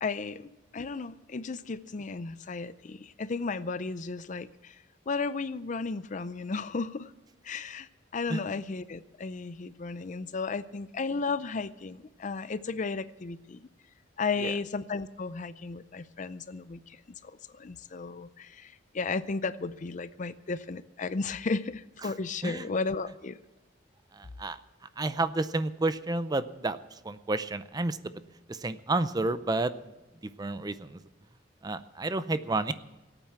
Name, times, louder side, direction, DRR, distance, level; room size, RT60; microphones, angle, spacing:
voice 1, 0.0-4.8 5.1-7.1 7.4-13.6 14.2-17.0 17.2-23.4, left 4 dB, 40° left, 15 dB, 0.5 m, -34 dB
voice 2, 24.1-24.6 25.0-28.0 28.5-29.9 30.2-31.0 31.6-32.7, right 2 dB, 20° right, 13 dB, 0.6 m, -31 dB
18.0 x 8.9 x 7.4 m, 1.1 s
head